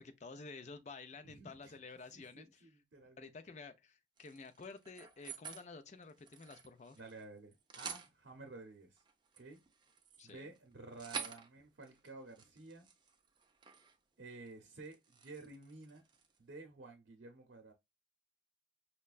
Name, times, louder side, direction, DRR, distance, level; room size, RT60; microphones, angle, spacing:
voice 1, 0.0-2.8 3.2-7.0 10.2-10.5, left 4 dB, 40° left, 0.4 m, -51 dB
voice 2, 1.2-1.8 2.1-3.3 7.0-9.0 9.4-9.6 10.2-12.9 14.2-16.0 16.4-17.7, right 3 dB, 80° right, 0.7 m, -53 dB
sound 1, 4.2-5.7 6.0-7.2 7.5-8.1 9.0-14.0 14.3-14.5 14.8-16.4, right 6 dB, 25° right, 0.4 m, -49 dB
5.4 x 2.2 x 2.3 m
head